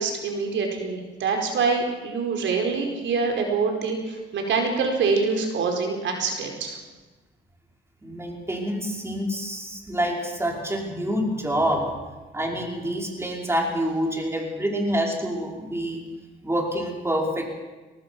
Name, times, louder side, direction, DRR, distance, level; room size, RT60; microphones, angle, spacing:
voice 1, 0.0-6.8, right 4 dB, 70° right, 3 dB, 4.8 m, -25 dB
voice 2, 8.0-11.9 12.3-16.0 16.4-17.5, equal, 15° right, 0 dB, 5.3 m, -27 dB
23.0 x 19.5 x 6.2 m, 1.2 s
cardioid pair, 90°, 20 cm